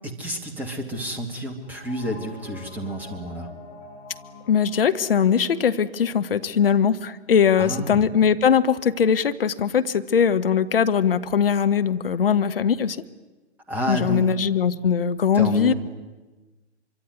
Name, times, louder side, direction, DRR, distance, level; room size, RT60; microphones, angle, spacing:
voice 1, 0.0-3.5 7.6-8.0 13.7-14.3 15.3-15.7, right 1 dB, 5° right, 2 dB, 2.5 m, -30 dB
sound 1, 1.6-6.6, left 3 dB, 20° left, 4.3 m, -46 dB
voice 2, 4.5-13.0 13.9-15.7, left 7 dB, 55° left, 11 dB, 1.3 m, -21 dB
25.5 x 24.5 x 9.6 m, 1.2 s
figure-of-eight pair, 130°, 35 cm